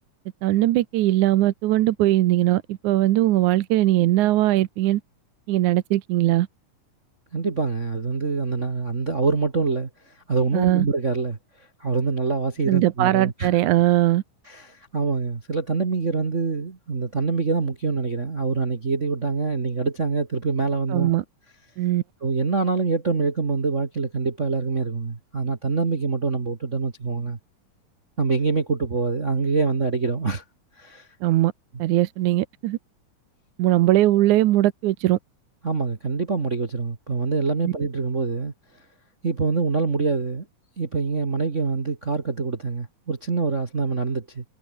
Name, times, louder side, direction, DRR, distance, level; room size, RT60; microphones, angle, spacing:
voice 1, 0.4-5.0 5.5-6.5 10.5-10.9 12.7-14.2 20.9-21.2 21.8-22.0 31.2-31.5 31.8-32.8 33.6-35.2 37.6-37.7, right 15 dB, 75° right, 2.3 m, -20 dB
voice 2, 7.3-9.9 10.3-11.4 11.8-13.5 14.5-21.1 22.2-27.4 28.2-30.4 30.8-31.1 35.6-38.5 39.2-40.4 40.8-44.4, right 4 dB, 30° right, 1.5 m, -25 dB
omnidirectional pair, 3.6 m